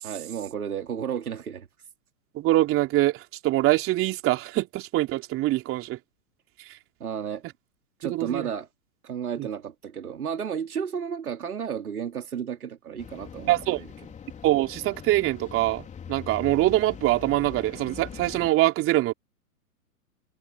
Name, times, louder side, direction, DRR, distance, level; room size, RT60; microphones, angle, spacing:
voice 1, 0.0-1.7 7.0-7.4 8.0-8.7 9.0-13.9, right 8 dB, 75° right, 3.7 m, -32 dB
voice 2, 2.3-6.0 8.0-8.5 9.4-9.5 13.5-13.8 14.4-19.1, right 16 dB, 30° right, 3.4 m, -24 dB
sound 1, 13.0-18.5, left 7 dB, 15° left, 4.0 m, -42 dB
figure-of-eight pair, 115°, 44 cm